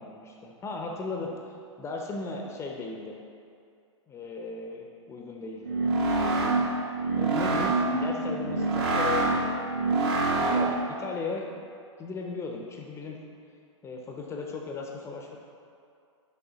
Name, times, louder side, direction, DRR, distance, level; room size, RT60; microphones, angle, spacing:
voice 1, 0.0-3.2 4.1-5.8 7.1-9.6 10.5-10.7 11.0-11.6 12.0-13.2 13.8-15.4, left 4 dB, 15° left, 1 dB, 0.6 m, -36 dB
sound 1, 5.6-10.9, right 3 dB, 55° right, 1.2 m, -26 dB
6.4 x 5.3 x 4.0 m, 2.4 s
hypercardioid pair, 115°, 16 cm